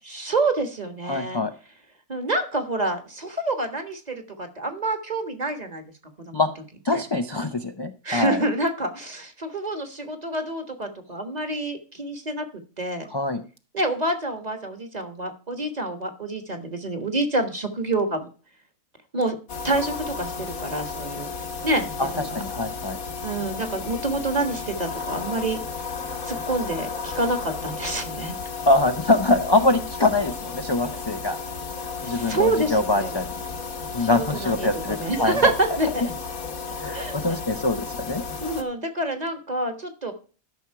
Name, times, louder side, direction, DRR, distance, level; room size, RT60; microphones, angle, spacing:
voice 1, 0.0-1.4 2.1-5.8 6.3-6.4 6.9-7.0 8.0-12.5 12.8-13.1 13.7-18.3 19.1-19.3 19.6-21.3 21.6-22.4 23.2-25.6 26.3-28.3 32.0-33.2 34.0-36.1 36.7-37.1 38.4-40.1, right 2 dB, 30° right, 6 dB, 1.5 m, -27 dB
voice 2, 1.1-1.5 6.3-6.5 6.8-8.4 13.1-13.4 22.0-22.1 22.3-23.0 28.7-31.4 32.0-33.3 33.9-35.5 36.8-38.2, left 2 dB, 35° left, 7 dB, 0.4 m, -23 dB
sound 1, 19.5-38.6, left 5 dB, 70° left, 1.7 m, -33 dB
12.5 x 6.1 x 4.7 m, 0.37 s
omnidirectional pair, 1.5 m